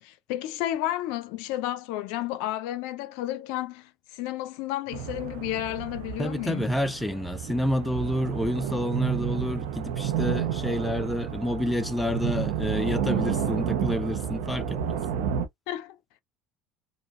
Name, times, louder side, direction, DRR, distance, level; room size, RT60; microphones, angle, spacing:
voice 1, 0.0-6.7 15.7-16.0, left 14 dB, 75° left, 0.5 m, -32 dB
sound 1, 4.9-15.5, right 8 dB, 80° right, 0.6 m, -30 dB
voice 2, 6.2-15.0, left 1 dB, 5° left, 0.4 m, -29 dB
2.7 x 2.1 x 2.4 m
supercardioid pair, 95°, 0 cm